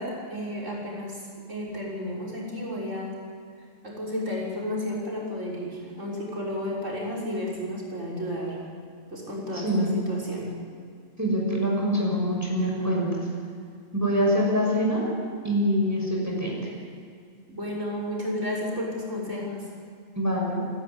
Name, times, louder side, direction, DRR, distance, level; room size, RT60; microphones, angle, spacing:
voice 1, 0.0-3.2 3.8-8.6 9.1-10.6 17.5-19.7, left 1 dB, 70° right, -3 dB, 6.4 m, -32 dB
voice 2, 9.5-9.9 11.2-13.3 13.9-15.0 15.4-16.6 20.2-20.6, equal, 10° right, -2 dB, 6.6 m, -24 dB
28.0 x 13.0 x 10.0 m, 2.3 s
omnidirectional pair, 1.3 m